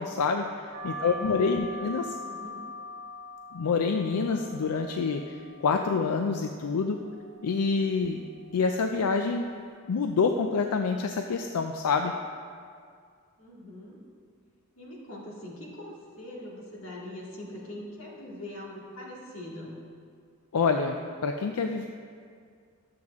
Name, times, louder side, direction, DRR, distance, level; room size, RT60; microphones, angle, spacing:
voice 1, 0.0-2.2 3.5-5.4 5.6-7.0 7.4-8.2 8.5-9.5 9.9-12.1 20.5-21.0 21.2-21.9, left 5 dB, 85° left, 5 dB, 0.4 m, -27 dB
sound 1, 0.7-9.8, left 1 dB, 50° right, 0.9 m, -43 dB
voice 2, 0.9-1.9 2.2-2.6 13.4-14.0 14.8-19.8, left 1 dB, 65° left, -5 dB, 2.1 m, -43 dB
12.0 x 7.8 x 3.6 m, 2.2 s
head